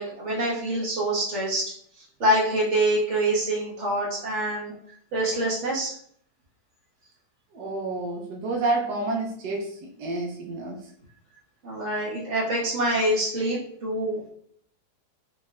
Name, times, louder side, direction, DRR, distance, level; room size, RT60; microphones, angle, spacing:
voice 1, 0.0-1.7 2.2-4.7 5.1-5.9 11.6-14.2, right 1 dB, 45° right, -6 dB, 1.8 m, -25 dB
voice 2, 7.5-10.8, right 2 dB, 90° right, -2 dB, 1.4 m, -29 dB
5.0 x 3.4 x 2.4 m, 0.64 s
omnidirectional pair, 1.7 m